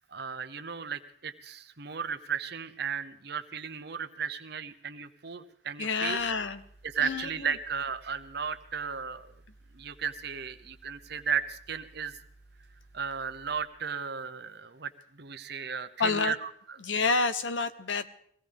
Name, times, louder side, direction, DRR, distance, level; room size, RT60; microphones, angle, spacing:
voice 1, 0.1-6.2 6.8-9.3 9.7-12.2 12.9-16.5, right 6 dB, 55° right, 10 dB, 0.9 m, -35 dB
voice 2, 5.8-6.6 7.0-7.6 16.0-16.3 16.8-18.1, left 4 dB, 75° left, 12 dB, 0.9 m, -28 dB
sound 1, 6.2-13.7, right 2 dB, 20° left, 3.2 m, -58 dB
22.5 x 16.5 x 3.5 m, 0.66 s
head